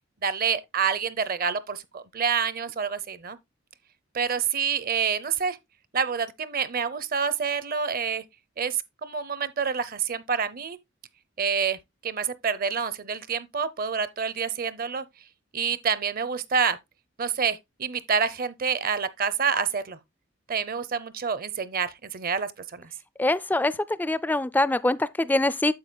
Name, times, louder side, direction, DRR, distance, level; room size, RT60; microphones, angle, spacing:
voice 1, 0.2-3.4 4.1-5.6 5.9-8.2 8.6-10.8 11.4-11.8 12.0-15.0 15.5-16.8 17.2-20.0 20.5-22.9, right 6 dB, 45° right, 0.7 m, -27 dB
voice 2, 23.2-25.7, left 2 dB, 10° left, 0.3 m, -24 dB
9.7 x 7.1 x 2.2 m
head